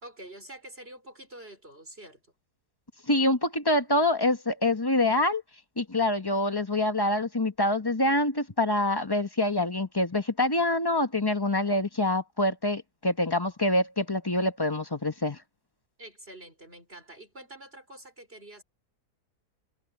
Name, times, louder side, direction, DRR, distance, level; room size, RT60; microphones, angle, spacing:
voice 1, 0.0-2.2 16.0-18.6, right 1 dB, 35° right, 4.7 m, -46 dB
voice 2, 3.1-5.4 5.8-15.4, left 1 dB, 15° left, 1.2 m, -26 dB
omnidirectional pair, 1.7 m